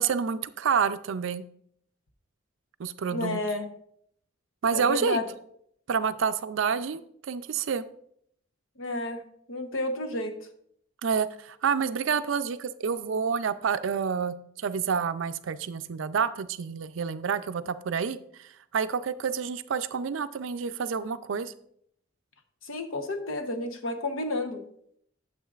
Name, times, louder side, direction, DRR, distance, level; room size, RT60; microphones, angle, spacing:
voice 1, 0.0-1.4 2.8-3.4 4.6-5.2 5.9-7.8 11.0-21.5, right 6 dB, 70° right, 12 dB, 0.4 m, -28 dB
voice 2, 3.1-3.7 4.7-5.2 8.8-9.2 9.5-10.3 22.6-24.6, left 2 dB, 80° left, 5 dB, 0.9 m, -31 dB
9.2 x 7.3 x 2.4 m, 0.68 s
head